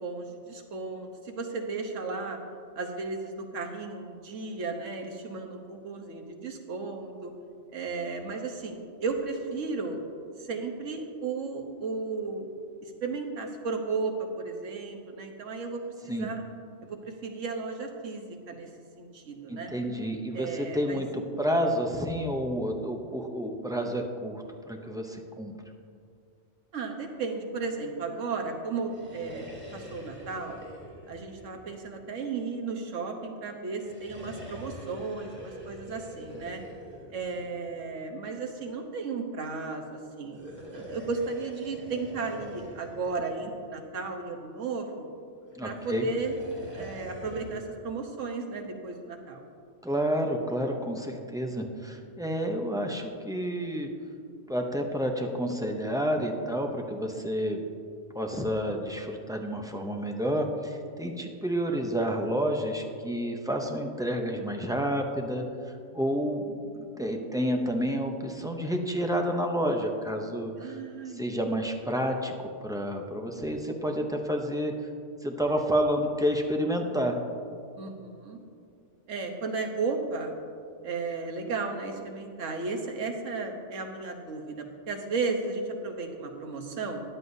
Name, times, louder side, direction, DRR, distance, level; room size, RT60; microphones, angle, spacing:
voice 1, 0.0-2.4 2.8-7.3 7.7-10.0 10.4-12.5 12.8-16.4 16.8-18.7 19.0-19.7 20.3-21.0 26.7-30.6 31.1-36.6 37.1-45.1 45.6-46.3 46.7-49.4 66.0-66.1 70.6-71.5 73.2-73.3 77.8-78.4 79.1-80.3 80.8-87.0, right 4 dB, 85° right, 4 dB, 1.4 m, -34 dB
voice 2, 19.5-25.6 45.5-46.1 49.8-53.9 54.5-57.6 58.1-65.4 65.9-70.8 71.2-74.7 75.2-77.2, equal, 5° right, 2 dB, 0.4 m, -30 dB
sound 1, 28.8-32.4 33.7-38.0 40.2-44.2 45.5-47.8, equal, 35° right, 2.4 m, -45 dB
13.5 x 9.6 x 2.7 m, 2.4 s
omnidirectional pair, 1.3 m